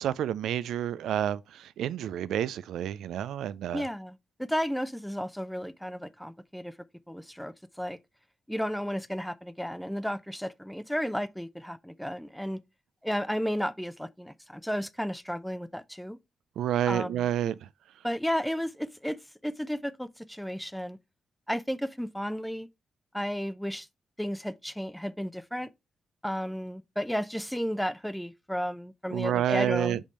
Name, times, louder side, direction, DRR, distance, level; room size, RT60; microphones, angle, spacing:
voice 1, 0.0-3.9 16.6-17.5 29.1-30.0, right 11 dB, 90° right, 0.3 m, -29 dB
voice 2, 3.7-6.7 7.1-8.0 8.5-12.6 13.0-16.2 16.9-17.3 18.0-21.0 21.5-22.7 23.1-23.9 24.2-25.7 26.2-30.0, equal, ahead, 0.5 m, -33 dB
5.3 x 5.1 x 4.2 m
cardioid pair, 70°, 0 cm